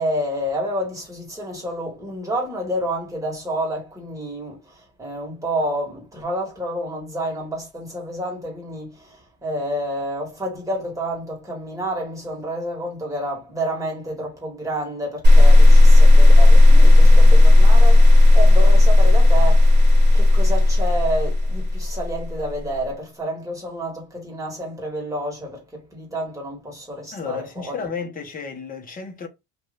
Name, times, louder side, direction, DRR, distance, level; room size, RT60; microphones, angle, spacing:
voice 1, 0.0-19.7 20.1-27.9, right 1 dB, 10° right, 1.6 m, -29 dB
sound 1, 15.2-22.4, left 2 dB, 35° right, 1.4 m, -11 dB
voice 2, 27.1-29.3, left 5 dB, 25° left, 1.0 m, -32 dB
2.7 x 2.6 x 3.3 m
cardioid pair, 135°, 31 cm